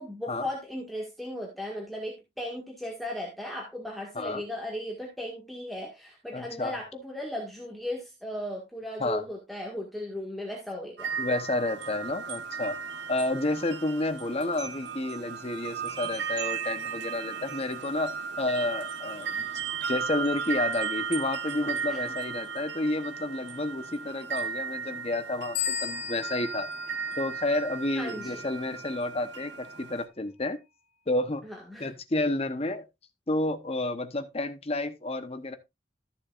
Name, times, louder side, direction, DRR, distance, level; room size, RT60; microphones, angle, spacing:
voice 1, 0.0-11.1 21.9-22.1 27.9-28.4 31.4-31.9, left 1 dB, ahead, 1.8 m, -37 dB
voice 2, 6.3-6.8 9.0-9.2 11.2-12.8 13.1-19.5 19.9-26.7 27.2-30.6 31.1-31.5 31.8-32.9 33.3-35.6, left 2 dB, 35° left, 0.9 m, -30 dB
sound 1, 11.0-30.1, right 6 dB, 65° right, 1.1 m, -35 dB
sound 2, 25.5-28.0, left 10 dB, 70° left, 2.7 m, -36 dB
13.5 x 7.2 x 2.5 m
head